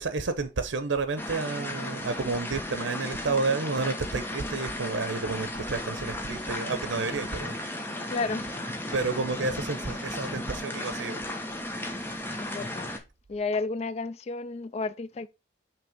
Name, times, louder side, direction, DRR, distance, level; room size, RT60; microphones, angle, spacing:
voice 1, 0.0-8.1 8.9-11.2, right 3 dB, 85° right, 0.7 m, -31 dB
sound 1, 1.2-13.0, left 1 dB, 10° left, 1.1 m, -35 dB
voice 2, 8.1-8.8 12.4-12.9 13.3-15.3, left 3 dB, 35° left, 0.3 m, -32 dB
5.9 x 3.3 x 5.2 m
head